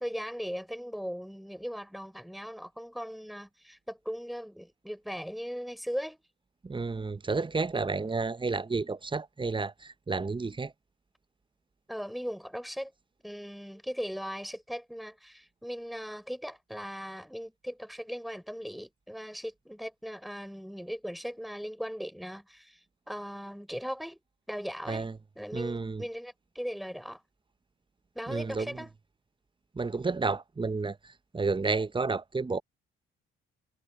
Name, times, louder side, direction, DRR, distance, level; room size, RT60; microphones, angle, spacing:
voice 1, 0.0-6.2 11.9-12.9 13.2-22.8 23.1-24.2 24.5-25.1 25.3-27.2 28.1-28.9, equal, ahead, 5.1 m, -38 dB
voice 2, 6.6-10.7 24.8-25.2 25.5-26.1 28.3-28.9 29.7-32.6, right 4 dB, 15° right, 0.7 m, -31 dB
hypercardioid pair, 50°, 32 cm